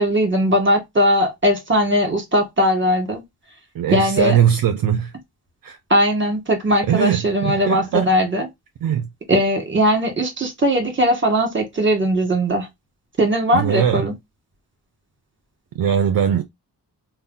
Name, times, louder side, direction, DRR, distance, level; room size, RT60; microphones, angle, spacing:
voice 1, 0.0-3.2 3.9-4.4 5.9-8.5 9.3-12.7 13.2-14.1, equal, 30° right, 1.3 m, -19 dB
voice 2, 3.7-5.1 5.6-5.8 6.9-8.1 8.8-9.1 13.5-14.1 15.7-16.4, right 9 dB, 60° right, 0.5 m, -20 dB
2.6 x 2.0 x 3.7 m
cardioid pair, 80°, 40 cm